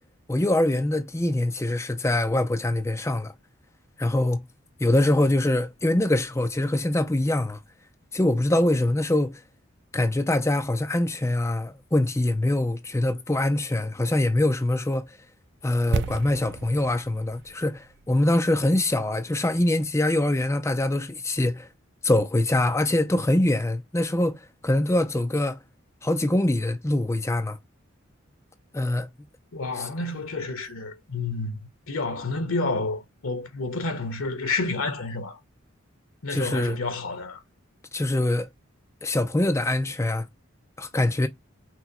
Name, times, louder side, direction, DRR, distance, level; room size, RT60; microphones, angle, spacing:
voice 1, 0.3-3.3 4.0-4.5 4.8-7.6 8.1-9.4 9.9-15.1 15.6-21.7 22.0-25.6 26.0-27.6 28.7-29.1 29.8-29.9 36.3-36.8 37.9-38.5 39.0-40.3 40.8-41.3, left 1 dB, 15° left, 0.4 m, -24 dB
sound 1, 15.9-19.9 20.1-20.2, right 5 dB, 55° right, 0.4 m, -35 dB
voice 2, 29.5-35.4 36.2-37.4, left 3 dB, 80° left, 1.1 m, -30 dB
5.9 x 2.2 x 2.9 m
head